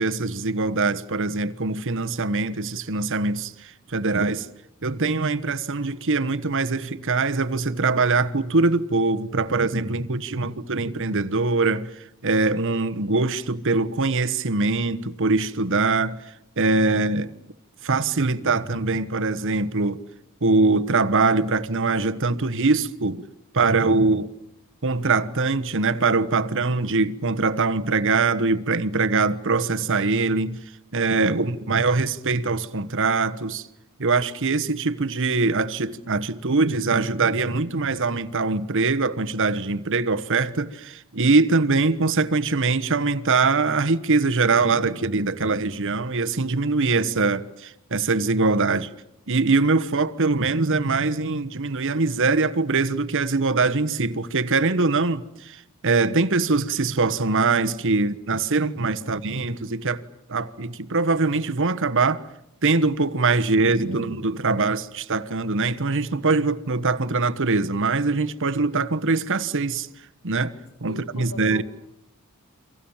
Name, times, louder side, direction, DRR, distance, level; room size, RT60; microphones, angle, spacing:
voice 1, 0.0-4.5 4.8-17.3 17.8-20.0 20.4-23.3 23.5-24.3 24.8-30.6 30.9-33.7 34.0-48.9 49.3-60.0 60.3-62.2 62.6-69.9 70.2-70.5 70.8-71.6, right 3 dB, 60° right, 1.2 m, -23 dB
voice 2, 63.4-64.2 70.9-71.6, left 1 dB, 80° left, 2.0 m, -41 dB
29.5 x 25.0 x 7.3 m
head